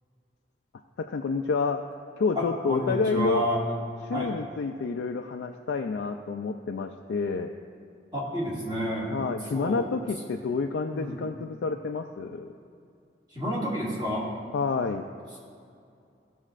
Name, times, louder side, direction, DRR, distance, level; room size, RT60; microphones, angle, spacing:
voice 1, 1.1-1.8 2.2-3.5 4.1-7.5 9.1-12.5 14.5-15.0, left 4 dB, 85° left, 3 dB, 0.4 m, -29 dB
voice 2, 2.4-3.6 4.1-4.3 8.1-9.1 9.5-9.9 10.9-11.2 13.3-14.3, equal, 25° right, -6 dB, 1.7 m, -30 dB
15.0 x 6.3 x 2.5 m, 2.5 s
head